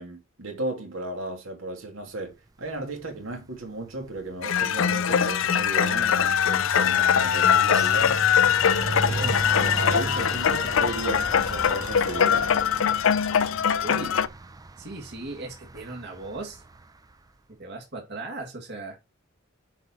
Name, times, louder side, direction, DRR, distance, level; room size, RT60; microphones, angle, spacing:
voice 1, 0.0-8.2 8.6-12.5, right 2 dB, 80° right, 2.3 m, -35 dB
sound 1, 3.1-3.4 3.7-16.8, right 2 dB, 20° right, 0.4 m, -36 dB
sound 2, 4.4-14.3, left 8 dB, 75° left, 0.5 m, -22 dB
voice 2, 13.8-14.2 14.8-16.6 17.6-19.0, right 2 dB, 60° right, 2.1 m, -37 dB
9.9 x 4.4 x 4.3 m
head